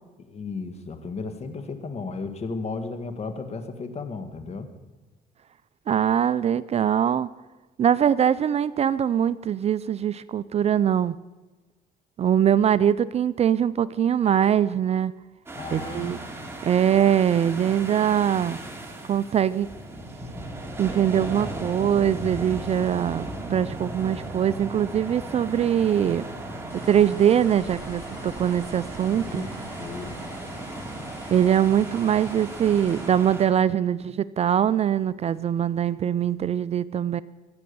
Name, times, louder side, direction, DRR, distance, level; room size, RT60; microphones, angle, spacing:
voice 1, 0.2-4.7 15.5-16.2 29.2-29.5 29.8-30.1, left 4 dB, 40° left, 9 dB, 1.7 m, -34 dB
voice 2, 5.9-7.3 7.8-11.1 12.2-15.1 15.7-16.2 16.6-18.6 19.1-19.7 20.8-26.2 26.7-29.4 31.3-37.2, right 9 dB, 40° right, 17 dB, 0.4 m, -22 dB
sound 1, 15.5-33.5, right 1 dB, 15° right, 2.9 m, -36 dB
sound 2, 26.7-33.1, equal, 15° left, 5.2 m, -45 dB
23.5 x 8.9 x 6.9 m, 1.2 s
cardioid pair, 110°, 17 cm